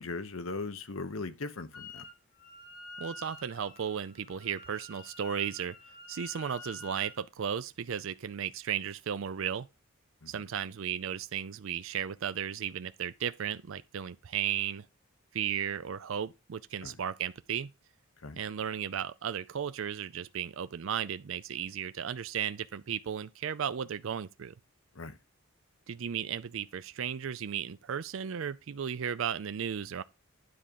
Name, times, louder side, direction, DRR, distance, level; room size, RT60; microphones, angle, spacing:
voice 1, 0.0-2.0 10.2-10.3 16.8-17.0 18.2-18.4 24.9-25.2, left 3 dB, 70° left, 0.9 m, -39 dB
Wind instrument woodwind instrument, 1.7-2.1 2.4-7.2, left 2 dB, 45° left, 1.4 m, -48 dB
voice 2, 3.0-5.8 6.1-9.7 10.3-14.9 15.3-17.7 18.4-24.5 25.9-30.0, right 8 dB, 65° right, 0.4 m, -35 dB
9.7 x 3.7 x 6.9 m
head